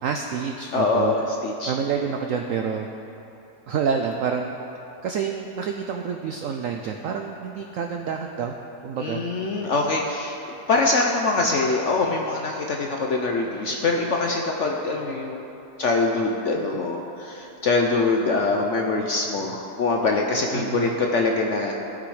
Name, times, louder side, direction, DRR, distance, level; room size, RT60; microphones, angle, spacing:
voice 1, 0.0-1.1 1.7-2.9 3.7-4.5 5.0-8.5 8.8-9.2 16.5-16.8 20.5-21.0, right 6 dB, 75° right, 3 dB, 0.7 m, -28 dB
voice 2, 0.7-1.7 9.0-10.4 10.7-15.4 15.8-21.7, left 3 dB, 60° left, 1 dB, 0.8 m, -24 dB
16.0 x 6.1 x 4.9 m, 2.9 s
omnidirectional pair, 1.9 m